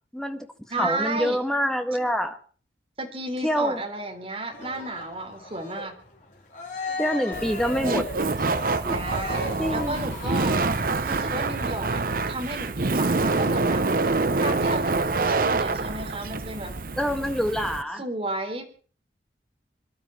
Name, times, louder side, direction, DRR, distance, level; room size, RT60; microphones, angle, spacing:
voice 1, 0.1-0.5 0.8-2.4 3.4-3.8 7.0-8.1 8.9-9.0 9.6-9.9 17.0-18.0, equal, 5° left, 5 dB, 1.6 m, -26 dB
voice 2, 0.7-1.4 3.0-5.9 8.9-10.5 11.0-12.0 12.3-13.8 14.4-16.7 18.0-18.6, right 2 dB, 35° right, 3 dB, 3.8 m, -32 dB
Cheering, 4.5-11.0, left 3 dB, 45° left, 4.2 m, -37 dB
Laughter, 7.3-17.8, right 3 dB, 50° right, 0.8 m, -26 dB
26.0 x 12.0 x 4.5 m, 0.41 s
head